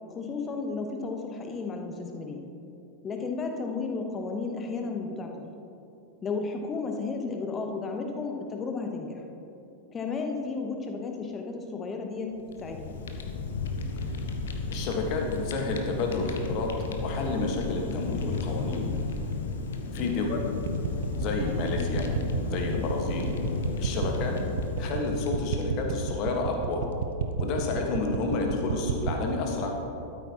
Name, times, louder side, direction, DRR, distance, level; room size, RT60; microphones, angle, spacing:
voice 1, 0.1-2.4 3.0-5.5 6.2-9.3 9.9-12.3 12.6-13.0 19.9-20.3, left 4 dB, 20° left, 3 dB, 1.0 m, -33 dB
Fire, 12.4-26.0, left 3 dB, 60° left, 0.8 m, -33 dB
voice 2, 14.7-16.7 17.0-18.9 19.9-20.4 21.2-22.1 22.5-23.3 23.8-24.4 24.8-26.8 27.4-29.7, left 3 dB, 40° left, 2 dB, 1.4 m, -30 dB
sound 1, 20.7-29.2, right 7 dB, 60° right, 0.6 m, -30 dB
12.5 x 8.4 x 2.9 m, 2.7 s
figure-of-eight pair, 90°, 0 cm